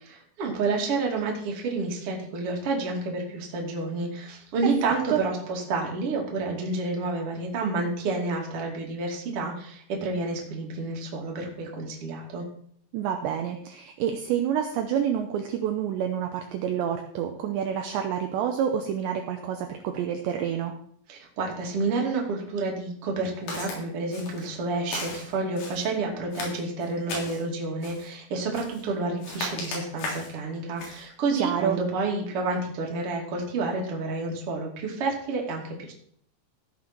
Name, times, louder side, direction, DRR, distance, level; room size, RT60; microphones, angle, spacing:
voice 1, 0.1-12.4 21.1-35.9, right 3 dB, 40° right, -1 dB, 2.4 m, -29 dB
voice 2, 4.6-5.2 12.9-20.8 31.3-31.8, right 9 dB, 75° right, 4 dB, 2.8 m, -28 dB
Walk footsteps, 23.5-23.8 24.1-24.5 24.9-25.9 26.3-27.4 27.8-28.1 28.5-28.9 29.2-30.4 30.8-31.0, left 3 dB, 70° left, 5.5 m, -36 dB
16.0 x 5.8 x 6.0 m, 0.63 s
omnidirectional pair, 5.8 m